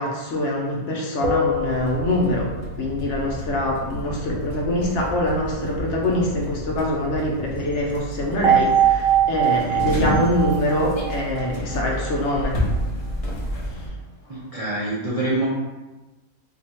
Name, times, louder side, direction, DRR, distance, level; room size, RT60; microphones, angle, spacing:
voice 1, 0.0-12.6 13.6-13.9, left 1 dB, 65° left, -2 dB, 0.9 m, -24 dB
sound 1, 1.2-2.8 8.4-11.8, right 7 dB, 70° right, 1.0 m, -22 dB
sound 2, 1.5-13.9, equal, 45° left, 0.5 m, -30 dB
voice 2, 14.3-15.5, right 2 dB, 50° right, -7 dB, 0.4 m, -25 dB
2.7 x 2.3 x 4.1 m, 1.1 s
omnidirectional pair, 1.5 m